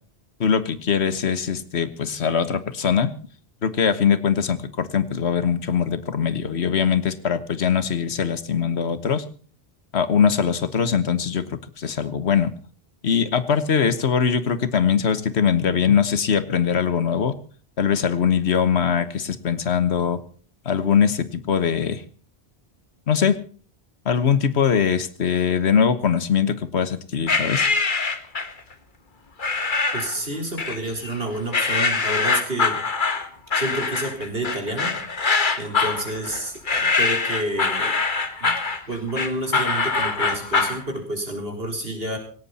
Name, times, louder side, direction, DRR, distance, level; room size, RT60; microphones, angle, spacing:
voice 1, 0.4-3.1 3.6-9.2 9.9-12.5 13.0-17.4 17.8-20.2 20.6-22.0 23.1-23.4 24.0-27.7, left 7 dB, 85° left, 13 dB, 1.5 m, -21 dB
sound 1, 27.3-28.6 29.4-30.2 30.6-31.2 31.5-40.8, left 4 dB, 50° left, 1.6 m, -23 dB
voice 2, 29.9-32.8 33.5-34.9 35.6-38.0 38.4-38.5 38.9-42.2, right 1 dB, 65° right, 3 dB, 4.8 m, -29 dB
17.5 x 17.5 x 4.2 m, 0.42 s
omnidirectional pair, 1.1 m